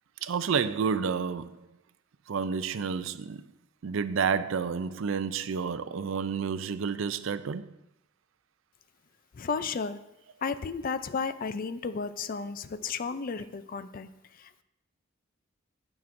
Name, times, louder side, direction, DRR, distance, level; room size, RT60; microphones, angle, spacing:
voice 1, 0.2-1.6 2.3-3.5 3.8-7.7, right 6 dB, 70° right, 0.4 m, -30 dB
voice 2, 9.3-10.0 10.4-14.1 14.4-14.6, left 5 dB, 45° left, 0.4 m, -33 dB
17.5 x 6.0 x 2.6 m
head